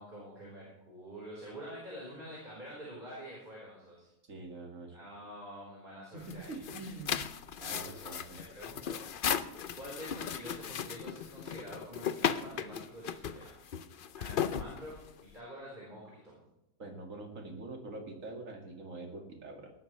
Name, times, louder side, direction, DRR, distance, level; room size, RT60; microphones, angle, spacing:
voice 1, 0.0-4.1 4.9-6.6 7.5-9.0 9.8-13.5 14.2-16.4, equal, 30° right, -6 dB, 4.6 m, -47 dB
voice 2, 4.3-4.9 6.1-7.2 7.6-8.4 16.8-19.7, right 2 dB, 60° right, 2 dB, 2.6 m, -44 dB
sound 1, 6.2-15.3, left 8 dB, 60° left, 0.5 m, -36 dB
18.5 x 12.0 x 3.3 m, 0.89 s
omnidirectional pair, 1.6 m